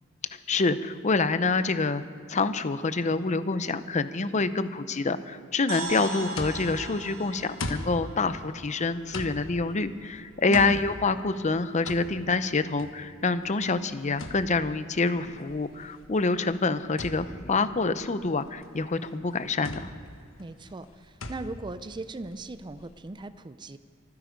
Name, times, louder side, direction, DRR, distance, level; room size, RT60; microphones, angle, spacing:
voice 1, 0.5-2.0 2.3-19.9, left 3 dB, 35° left, 12 dB, 0.7 m, -27 dB
sound 1, 5.7-9.6, right 2 dB, 85° right, 3.6 m, -39 dB
sound 2, 6.2-23.1, left 2 dB, 75° left, 1.3 m, -41 dB
voice 2, 10.5-10.8 11.1-11.2 20.4-23.8, right 2 dB, 25° right, 13 dB, 0.4 m, -38 dB
24.5 x 9.7 x 5.2 m, 2.3 s
head